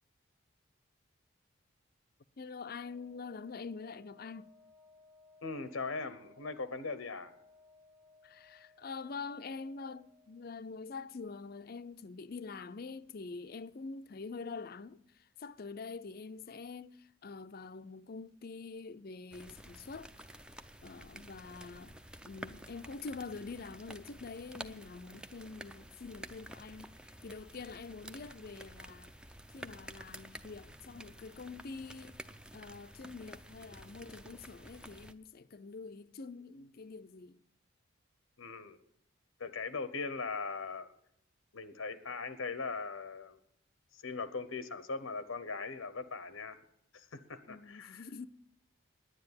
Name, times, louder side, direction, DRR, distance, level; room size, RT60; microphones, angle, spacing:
voice 1, 2.4-4.5 8.2-20.1 20.8-22.0 22.3-29.1 29.5-32.2 32.5-37.4 47.5-48.3, left 4 dB, 45° left, 0.5 m, -45 dB
Wind instrument woodwind instrument, 2.7-10.5, left 3 dB, 20° right, 1.0 m, -63 dB
voice 2, 5.4-7.3 38.4-38.8 39.4-40.9 41.5-43.4 43.9-46.6 46.9-48.0, left 4 dB, 85° left, 0.9 m, -40 dB
sound 1, 19.3-35.1, right 1 dB, 5° right, 0.5 m, -51 dB
10.0 x 9.6 x 9.6 m
head